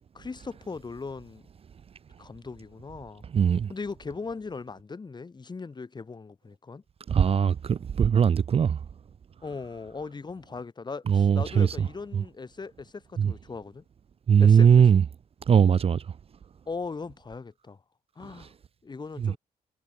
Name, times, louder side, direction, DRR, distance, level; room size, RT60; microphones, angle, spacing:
voice 1, 0.1-1.4 2.2-3.2 3.7-6.8 9.4-13.8 14.4-14.7 16.7-17.8 18.2-18.5 18.8-19.4, left 4 dB, 30° left, 1.9 m, -38 dB
voice 2, 3.3-3.7 7.1-8.8 11.1-11.9 12.1-12.2 13.2-13.3 14.3-15.0 15.5-16.0 18.4-18.5 19.2-19.3, right 7 dB, 40° right, 0.5 m, -20 dB
cardioid pair, 105°, 15 cm